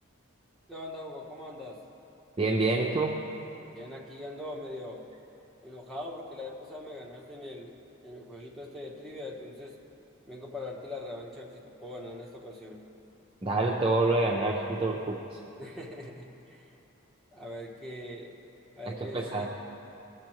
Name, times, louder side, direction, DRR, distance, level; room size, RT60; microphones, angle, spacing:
voice 1, 0.7-1.8 3.7-5.1 5.6-7.7 8.0-9.8 10.3-12.8 15.5-16.7 17.3-18.3 18.8-19.5, left 1 dB, ahead, -4 dB, 1.0 m, -42 dB
voice 2, 2.4-3.1 13.4-15.2 19.1-19.5, right 2 dB, 25° right, -2 dB, 0.5 m, -26 dB
18.0 x 6.4 x 3.0 m, 3.0 s
head